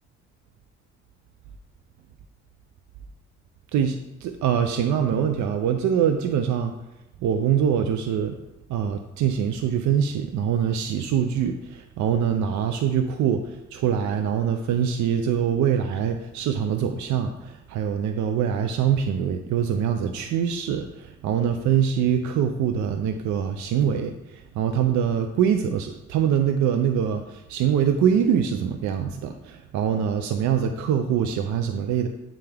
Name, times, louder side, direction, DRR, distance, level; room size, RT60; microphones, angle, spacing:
voice 1, 3.7-6.7 7.2-8.4 8.7-32.1, right 8 dB, 70° right, 6 dB, 0.5 m, -24 dB
9.1 x 3.5 x 3.4 m, 0.98 s
cardioid pair, 85°, 30 cm